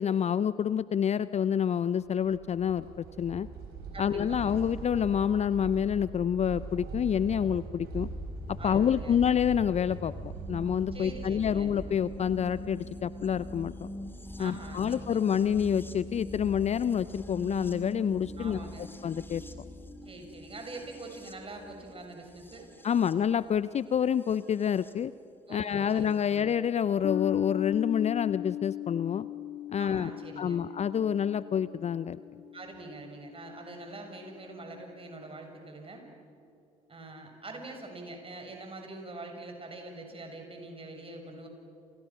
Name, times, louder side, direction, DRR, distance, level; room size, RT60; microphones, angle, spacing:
voice 1, 0.0-3.5 4.0-8.1 8.5-13.9 14.4-18.6 19.0-19.4 22.8-25.1 25.5-29.3 29.7-30.1 30.4-32.2, left 8 dB, 35° left, 16 dB, 0.6 m, -28 dB
sound 1, 2.0-13.1, right 5 dB, 55° right, 5.3 m, -43 dB
voice 2, 3.9-4.6 8.6-9.4 10.9-11.7 14.4-15.2 18.4-18.9 20.1-22.7 25.5-26.5 29.8-30.6 32.5-36.1 36.9-41.5, right 2 dB, 30° right, 3 dB, 7.0 m, -44 dB
sound 2, 7.9-24.9 26.1-26.2, left 1 dB, 10° left, 2.2 m, -43 dB
sound 3, 27.0-33.8, left 12 dB, 60° left, 2.2 m, -38 dB
29.0 x 28.5 x 6.2 m, 2.6 s
figure-of-eight pair, 55°, 19 cm